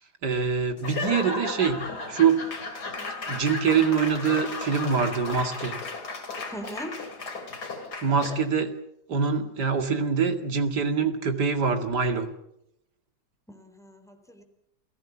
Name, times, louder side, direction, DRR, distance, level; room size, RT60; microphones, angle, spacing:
voice 1, 0.2-1.8 2.1-2.4 3.3-5.8 8.0-8.7 9.1-12.3, right 6 dB, 70° right, 7 dB, 2.8 m, -24 dB
Laughter / Applause / Crowd, 0.8-8.5, left 3 dB, 70° left, 3.6 m, -35 dB
voice 2, 6.5-6.9 13.5-14.4, equal, ahead, 7 dB, 3.7 m, -40 dB
30.0 x 17.0 x 7.3 m, 0.80 s
omnidirectional pair, 1.8 m